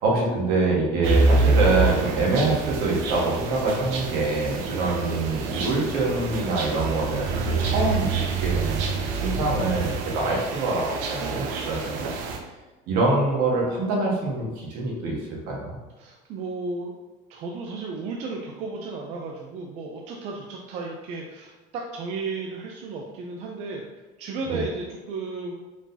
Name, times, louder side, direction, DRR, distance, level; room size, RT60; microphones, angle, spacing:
voice 1, 0.0-12.0 12.9-15.2 15.5-15.8 24.5-24.6, right 2 dB, 70° right, -2 dB, 1.4 m, -25 dB
sound 1, 1.0-12.4, right 3 dB, 85° right, 0.7 m, -26 dB
voice 2, 16.0-16.9 17.3-23.8 24.2-25.5, right 3 dB, 45° right, 0 dB, 0.4 m, -34 dB
4.8 x 3.8 x 2.7 m, 1.2 s
cardioid pair, 175°, 16 cm